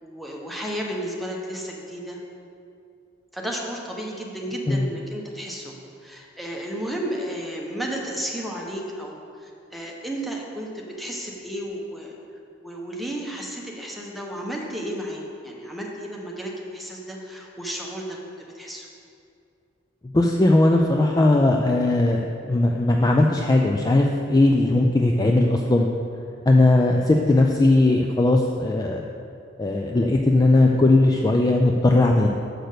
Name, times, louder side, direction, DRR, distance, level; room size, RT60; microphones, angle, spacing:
voice 1, 0.0-2.2 3.3-5.7 6.0-12.1 12.6-18.9, right 1 dB, ahead, -2 dB, 1.0 m, -33 dB
voice 2, 20.1-25.9 26.5-29.1 29.6-32.3, left 2 dB, 20° left, 1 dB, 0.4 m, -18 dB
6.6 x 6.0 x 6.6 m, 2.5 s
head